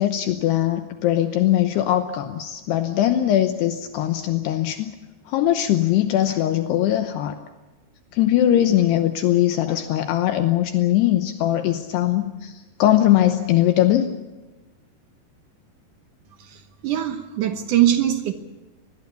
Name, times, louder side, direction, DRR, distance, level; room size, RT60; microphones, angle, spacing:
voice 1, 0.0-4.9 5.3-7.4 8.1-14.1, left 12 dB, 75° left, 8 dB, 2.9 m, -20 dB
voice 2, 16.8-18.3, right 12 dB, 70° right, 8 dB, 2.0 m, -21 dB
24.5 x 20.5 x 7.0 m, 1.2 s
omnidirectional pair, 5.1 m